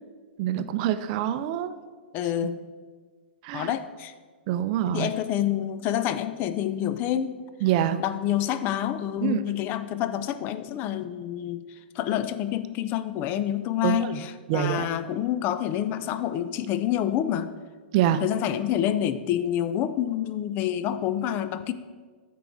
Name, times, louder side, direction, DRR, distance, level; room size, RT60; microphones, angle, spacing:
voice 1, 0.4-1.8 3.4-3.7 4.5-5.1 7.6-8.0 9.2-9.4 13.8-14.2 14.5-14.9 17.9-18.3, right 11 dB, 45° right, 11 dB, 0.5 m, -25 dB
voice 2, 2.1-2.6 3.5-4.1 4.9-7.4 8.0-11.6 12.0-14.3 14.5-17.5 18.2-21.7, left 11 dB, 35° left, 12 dB, 0.5 m, -27 dB
13.5 x 4.7 x 4.0 m, 1.5 s
hypercardioid pair, 110°, 6 cm